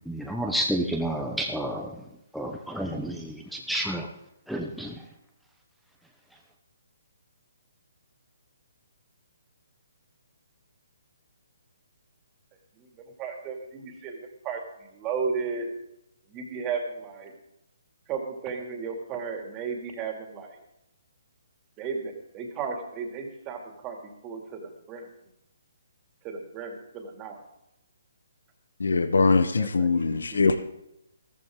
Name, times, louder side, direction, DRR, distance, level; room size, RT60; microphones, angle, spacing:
voice 1, 0.1-2.0 2.3-4.1 4.5-4.9, right 1 dB, ahead, 0 dB, 1.0 m, -30 dB
voice 2, 13.2-15.7 16.3-17.3 18.1-20.6 21.8-25.1 26.2-27.4 29.3-30.4, right 5 dB, 20° right, 2 dB, 2.6 m, -35 dB
voice 3, 28.8-30.6, left 4 dB, 85° left, 10 dB, 1.1 m, -22 dB
14.5 x 14.0 x 3.8 m, 0.84 s
hypercardioid pair, 155°, 0 cm